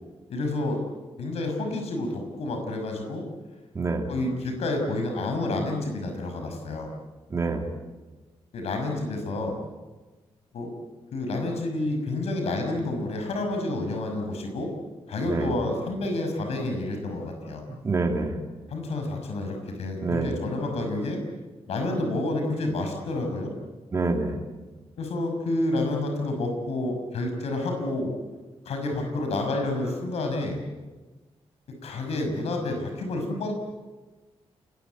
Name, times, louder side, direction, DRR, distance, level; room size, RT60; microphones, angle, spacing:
voice 1, 0.3-0.8 1.2-3.2 4.1-6.9 8.5-9.5 10.5-10.7 11.1-14.7 15.1-17.6 18.7-21.2 21.7-23.5 25.0-28.1 28.6-30.6 31.8-33.5, left 2 dB, 80° left, 4 dB, 6.0 m, -29 dB
voice 2, 3.7-4.1 7.3-7.7 15.3-15.6 17.8-18.4 20.0-20.4 23.9-24.4, right 3 dB, 30° right, 2 dB, 2.9 m, -26 dB
29.0 x 20.5 x 9.4 m, 1.2 s
wide cardioid pair, 175°, 11 cm